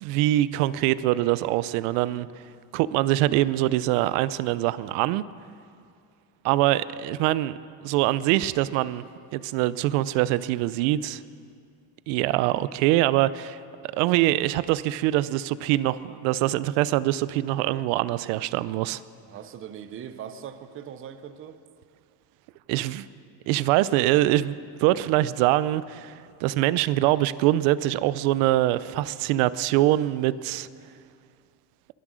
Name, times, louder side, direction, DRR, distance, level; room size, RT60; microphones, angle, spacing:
voice 1, 0.0-2.3 2.7-5.2 6.4-7.6 7.8-9.0 9.3-11.2 12.1-19.0 22.7-23.1 23.5-26.1 26.4-30.7, right 15 dB, 85° right, 17 dB, 0.6 m, -24 dB
voice 2, 19.2-21.6, right 9 dB, 25° right, 11 dB, 0.5 m, -40 dB
22.0 x 7.5 x 6.2 m, 2.3 s
cardioid pair, 150°, 50 cm